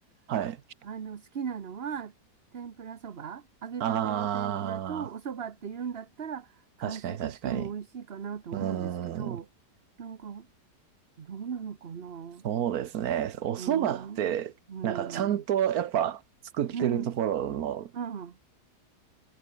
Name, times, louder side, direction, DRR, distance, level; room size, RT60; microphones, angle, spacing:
voice 1, 0.8-2.1 2.5-9.5 10.0-10.5 11.2-12.5 13.6-14.3 14.7-15.4 16.7-17.1 17.9-18.4, right 7 dB, 40° right, 1.2 m, -38 dB
voice 2, 3.8-5.1 6.8-7.7 8.5-9.4 12.4-14.5 14.8-16.2 16.5-17.9, right 10 dB, 65° right, 1.4 m, -29 dB
omnidirectional pair, 1.7 m